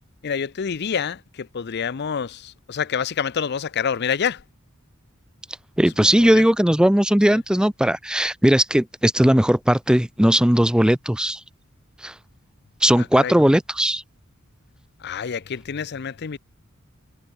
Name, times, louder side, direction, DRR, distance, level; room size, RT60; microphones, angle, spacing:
voice 1, 0.2-4.4 6.0-6.4 7.3-7.4 13.0-13.3 15.0-16.4, left 7 dB, 55° left, 0.5 m, -27 dB
voice 2, 5.8-11.4 12.0-12.1 12.8-14.0, equal, 5° right, 0.5 m, -18 dB
head